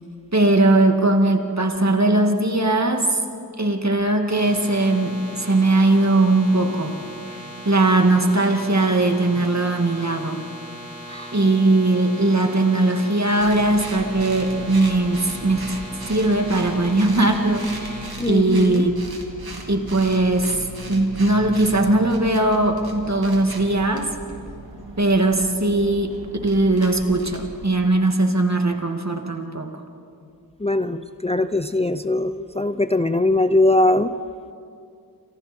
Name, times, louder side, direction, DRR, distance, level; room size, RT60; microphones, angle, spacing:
voice 1, 0.3-3.2 3.6-7.0 7.4-10.5 11.3-15.8 16.0-18.9 19.7-24.1 25.0-26.2 26.4-29.8, right 2 dB, 45° right, 3 dB, 2.3 m, -19 dB
sound 1, 4.3-18.1, equal, 25° right, 7.2 m, -39 dB
sound 2, 13.4-27.8, right 1 dB, 75° right, 2.8 m, -37 dB
voice 2, 18.2-18.9 30.6-34.1, left 2 dB, 15° left, 10 dB, 0.6 m, -21 dB
29.5 x 27.0 x 4.5 m, 2.5 s
wide cardioid pair, 45°, 37 cm